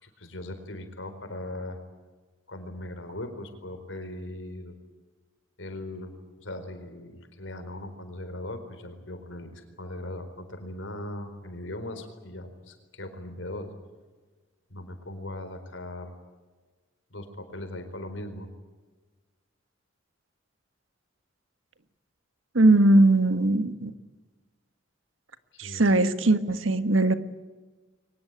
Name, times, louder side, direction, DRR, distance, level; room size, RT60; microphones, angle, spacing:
voice 1, 0.0-1.8 2.5-4.8 5.6-6.1 6.4-13.7 14.7-16.1 17.1-18.5 25.6-25.9, left 1 dB, 80° left, 7 dB, 4.3 m, -39 dB
voice 2, 22.5-23.9 25.6-27.1, right 2 dB, 90° right, 11 dB, 1.5 m, -20 dB
23.0 x 20.0 x 9.7 m, 1.3 s
head